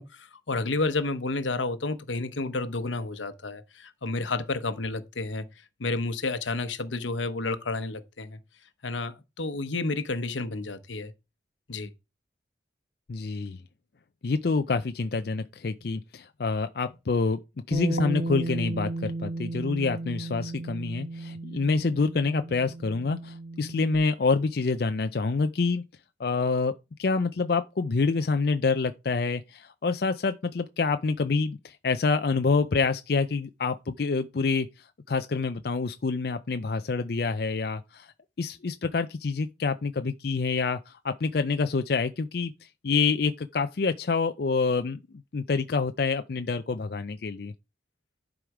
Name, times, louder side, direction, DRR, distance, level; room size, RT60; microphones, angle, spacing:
voice 1, 0.0-5.5 5.8-8.4 8.8-11.1 11.7-11.9, left 3 dB, 90° left, 1.0 m, -31 dB
voice 2, 13.1-13.6 14.2-17.4 17.7-25.8 26.2-34.7 35.1-38.1 38.4-42.5 42.8-45.0 45.3-47.5, left 4 dB, 55° left, 0.5 m, -27 dB
Bass guitar, 17.7-24.0, right 2 dB, 45° right, 1.1 m, -34 dB
11.0 x 4.9 x 4.9 m
head